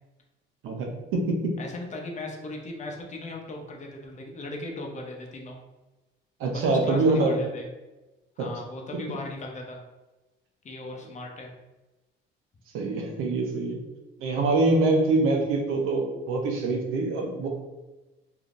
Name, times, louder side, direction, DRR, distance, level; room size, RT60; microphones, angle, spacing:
voice 1, 0.6-1.5 6.4-7.4 8.4-8.5 12.7-13.8 14.2-17.5, right 2 dB, 80° right, 2 dB, 0.7 m, -24 dB
voice 2, 1.6-5.6 6.5-7.7 8.4-9.8 10.6-11.5, left 2 dB, 35° left, 0 dB, 0.7 m, -38 dB
3.4 x 2.7 x 2.5 m, 1.1 s
cardioid pair, 105°, 21 cm